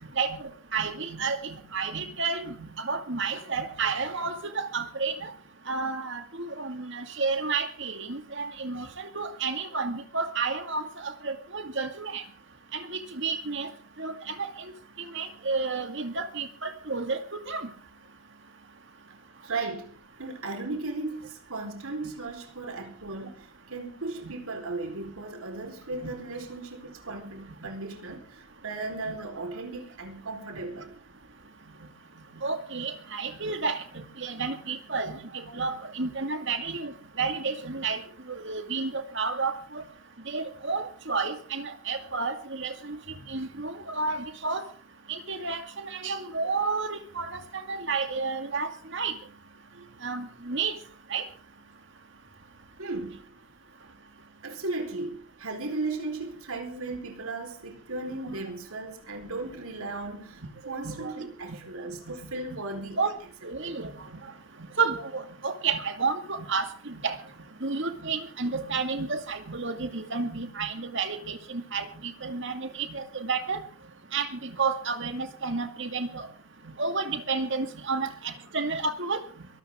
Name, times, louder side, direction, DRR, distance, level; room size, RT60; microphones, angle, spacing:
voice 1, 0.2-5.3 5.7-12.2 12.7-13.7 14.0-14.7 15.0-17.7 24.2-24.3 26.0-26.1 27.6-27.7 29.1-29.2 32.4-39.8 40.3-43.0 43.3-44.6 45.1-49.1 50.0-50.8 51.1-51.3 58.2-58.4 60.8-61.1 61.5-61.6 62.1-62.2 63.0-63.1 63.4-64.2 64.8-67.2 67.6-73.6 74.1-76.3 76.6-79.5, right 4 dB, 55° right, 2.1 m, -31 dB
voice 2, 19.4-31.0 49.7-50.0 52.8-53.3 53.8-53.9 54.4-63.1 63.6-63.8, right 3 dB, 75° right, 4.2 m, -36 dB
23.0 x 13.0 x 3.7 m
head